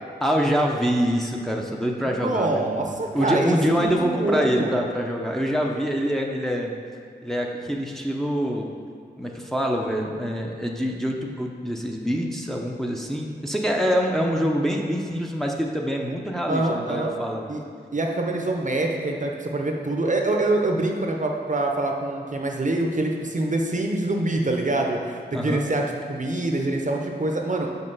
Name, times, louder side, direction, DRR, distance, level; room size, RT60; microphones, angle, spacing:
voice 1, 0.2-6.7 7.2-8.7 9.2-17.6 25.3-25.6, equal, ahead, 0 dB, 0.7 m, -25 dB
voice 2, 2.0-4.7 16.5-17.1 17.5-17.6 17.9-25.8 26.1-27.7, right 2 dB, 45° right, 2 dB, 0.7 m, -25 dB
5.4 x 5.2 x 5.5 m, 2.2 s
wide cardioid pair, 65°, 18 cm